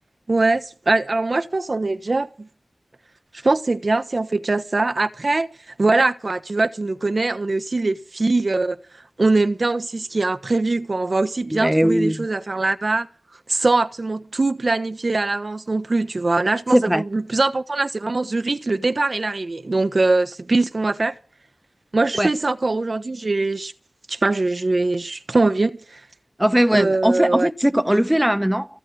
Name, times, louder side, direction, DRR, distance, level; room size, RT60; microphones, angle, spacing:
voice 1, 0.3-2.5 3.4-5.5 5.8-8.8 9.2-13.1 13.5-21.1 21.9-23.7 24.1-26.0 26.7-27.5, right 3 dB, 55° right, 1.2 m, -22 dB
voice 2, 11.5-12.2 16.7-17.0 22.2-22.3 26.4-28.7, equal, 10° right, 0.9 m, -19 dB
16.0 x 8.7 x 8.2 m
cardioid pair, 45°, 0 cm